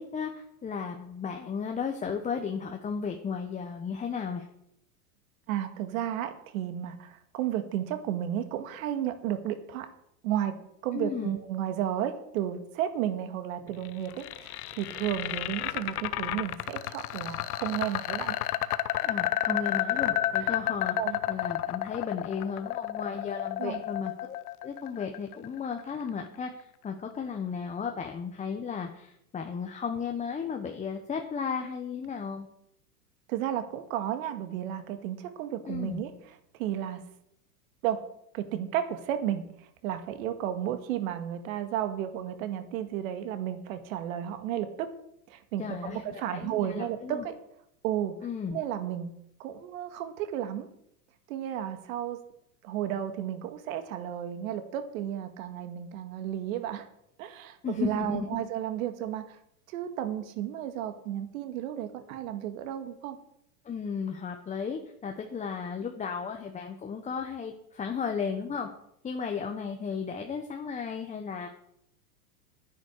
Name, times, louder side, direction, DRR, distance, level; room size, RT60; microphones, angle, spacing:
voice 1, 0.0-4.4 10.9-11.4 19.0-21.0 21.3-24.4 24.6-32.5 35.7-36.0 45.6-47.3 48.2-48.6 57.6-58.4 63.6-68.7 69.0-71.5, left 6 dB, 15° left, 3 dB, 1.1 m, -34 dB
voice 2, 5.5-9.9 10.2-10.6 10.8-18.4 19.5-19.6 20.4-20.5 21.0-21.2 23.6-23.8 33.3-36.1 36.6-37.0 37.8-38.0 38.3-44.9 45.3-47.4 47.8-48.1 48.5-49.1 49.4-50.7 51.3-52.2 52.6-56.9 57.2-59.4 59.7-63.2, right 11 dB, 60° right, 8 dB, 2.0 m, -33 dB
sound 1, 13.8-25.9, left 14 dB, 65° left, 1.0 m, -31 dB
10.0 x 9.9 x 6.5 m, 0.74 s
hypercardioid pair, 120°, 47 cm